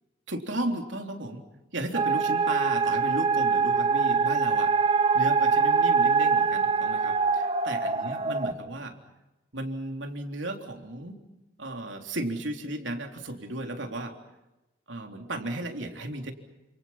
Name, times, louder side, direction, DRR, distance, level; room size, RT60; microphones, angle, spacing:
voice 1, 0.3-1.5 1.7-9.0 9.5-11.2 11.6-14.2 14.9-16.3, right 1 dB, 70° right, 4 dB, 3.6 m, -35 dB
sound 1, 1.9-8.5, right 5 dB, 30° right, 1.6 m, -24 dB
29.0 x 28.0 x 5.8 m, 1.0 s
head